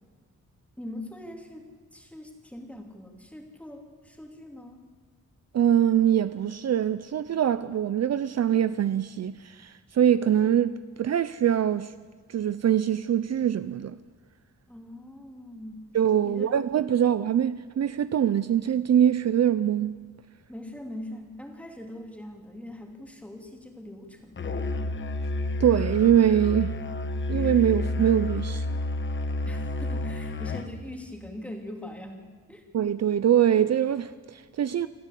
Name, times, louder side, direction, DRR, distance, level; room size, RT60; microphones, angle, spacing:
voice 1, 0.8-4.8 14.7-15.9 16.2-16.6 20.5-24.6 29.4-32.6, left 1 dB, 5° left, 2.7 m, -42 dB
voice 2, 5.5-11.9 12.3-14.0 15.9-20.0 25.6-26.8 27.3-28.8 32.7-34.9, right 10 dB, 55° right, 0.6 m, -23 dB
Musical instrument, 24.4-30.7, left 2 dB, 40° left, 1.1 m, -30 dB
27.0 x 14.0 x 8.4 m
wide cardioid pair, 175°, 31 cm